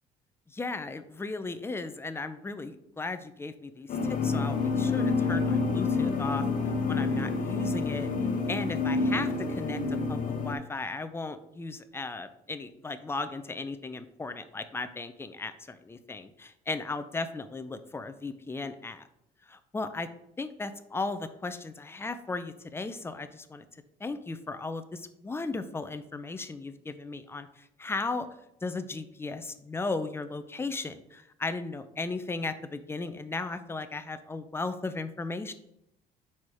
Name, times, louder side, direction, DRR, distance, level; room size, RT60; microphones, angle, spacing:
voice 1, 0.5-6.4 6.9-8.1 8.5-9.8 10.1-19.1 19.4-20.1 20.4-28.3 28.6-35.5, left 3 dB, 15° left, 11 dB, 0.5 m, -36 dB
sound 1, 3.9-10.5, left 4 dB, 55° left, 0.9 m, -28 dB
4.6 x 4.3 x 4.8 m, 0.80 s
cardioid pair, 110°, 17 cm